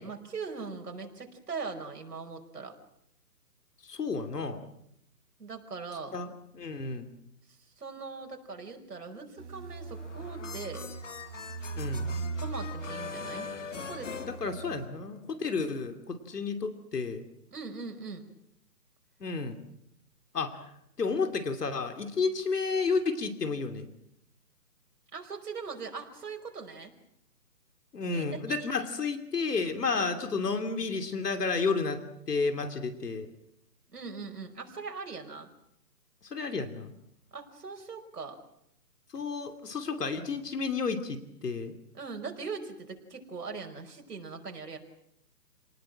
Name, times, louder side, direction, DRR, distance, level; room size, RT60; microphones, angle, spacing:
voice 1, 0.0-2.8 5.4-6.1 7.8-10.9 12.4-14.1 17.5-18.2 25.1-26.9 28.1-28.7 29.9-30.1 33.9-35.5 37.3-38.4 41.9-44.8, right 4 dB, 70° right, 3 dB, 5.4 m, -40 dB
voice 2, 3.8-4.6 6.1-7.1 11.8-12.1 14.2-17.2 19.2-19.6 20.3-20.6 21.0-23.9 27.9-33.3 36.2-36.9 39.1-41.7, left 4 dB, 70° left, 8 dB, 3.0 m, -31 dB
sound 1, 9.4-14.9, right 4 dB, 45° right, 3.3 m, -39 dB
sound 2, 9.9-15.2, left 5 dB, 50° left, 1.9 m, -42 dB
28.5 x 19.5 x 7.6 m, 0.75 s
hypercardioid pair, 170°, 49 cm